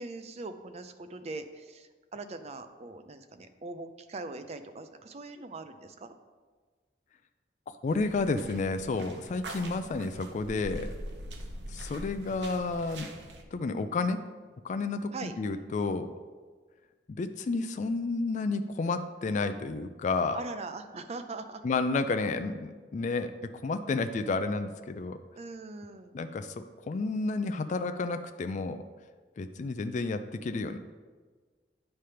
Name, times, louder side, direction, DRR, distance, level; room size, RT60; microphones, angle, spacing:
voice 1, 0.0-6.2 15.1-15.3 20.3-21.6 25.4-26.2, right 3 dB, 40° right, 9 dB, 0.5 m, -41 dB
voice 2, 7.8-10.9 11.7-13.1 13.5-14.2 14.6-16.1 17.1-20.4 21.6-23.3 23.6-25.2 26.1-28.8 29.4-30.8, left 3 dB, 45° left, 9 dB, 0.4 m, -31 dB
sound 1, 7.9-13.4, right 1 dB, 80° right, 0.8 m, -43 dB
9.1 x 3.3 x 5.6 m, 1.4 s
head